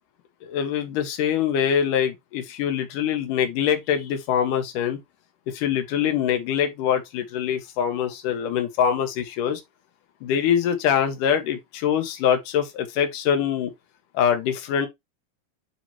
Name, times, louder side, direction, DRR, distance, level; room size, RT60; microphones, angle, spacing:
voice 1, 0.4-5.0 5.5-9.6 10.2-13.7 14.1-14.9, left 8 dB, 60° left, 2.8 m, -24 dB
10.5 x 3.6 x 3.0 m
omnidirectional pair, 4.6 m